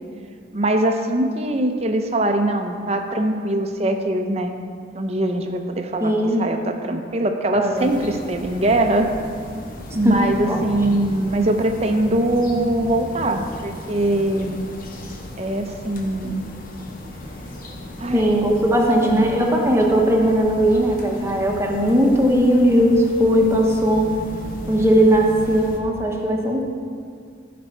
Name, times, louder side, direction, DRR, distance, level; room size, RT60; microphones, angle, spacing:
voice 1, 0.5-4.5 4.9-6.1 6.4-9.1 9.9-14.6 15.4-16.4 18.0-18.4 19.0-19.3, right 1 dB, 35° right, 5 dB, 0.7 m, -22 dB
voice 2, 6.0-6.4 7.5-7.9 10.0-10.2 10.5-10.6 18.1-24.1 24.7-26.6, equal, 15° right, 0 dB, 1.0 m, -18 dB
sound 1, 7.7-25.8, left 1 dB, 50° left, 1.1 m, -36 dB
15.0 x 5.2 x 4.5 m, 2.2 s
head